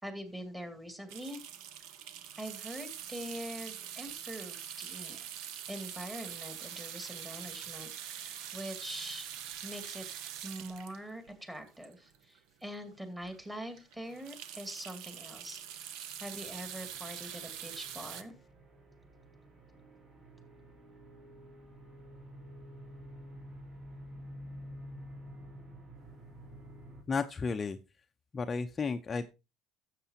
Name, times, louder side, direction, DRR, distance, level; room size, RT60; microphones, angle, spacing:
voice 1, 0.0-1.4 2.4-5.2 5.7-9.3 9.6-10.1 10.4-15.9 16.2-18.3, equal, 10° right, 6 dB, 2.3 m, -44 dB
sound 1, 1.1-12.4 12.9-13.0 13.2-13.4 13.7-18.2, right 10 dB, 80° right, 0.9 m, -44 dB
sound 2, 16.2-27.0, equal, 50° right, 3.2 m, -50 dB
voice 2, 27.1-27.8 28.3-29.3, left 5 dB, 25° left, 7 dB, 0.6 m, -33 dB
12.5 x 7.5 x 2.8 m, 0.27 s
cardioid pair, 120°, 0 cm